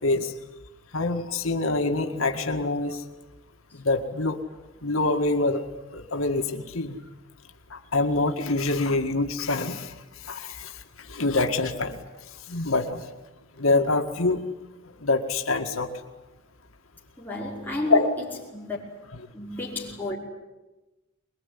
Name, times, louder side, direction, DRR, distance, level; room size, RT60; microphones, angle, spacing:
voice 1, 0.0-0.3 0.9-3.0 3.7-4.4 4.8-5.6 5.9-7.0 7.7-9.9 10.2-10.7 11.0-12.0 12.5-13.0 13.6-14.4 15.0-15.9 17.8-18.1 19.1-19.2, left 3 dB, 90° left, 1.9 m, -25 dB
voice 2, 17.2-18.0 18.5-18.8 19.3-20.2, left 2 dB, 10° left, 5.5 m, -31 dB
23.5 x 22.0 x 10.0 m
head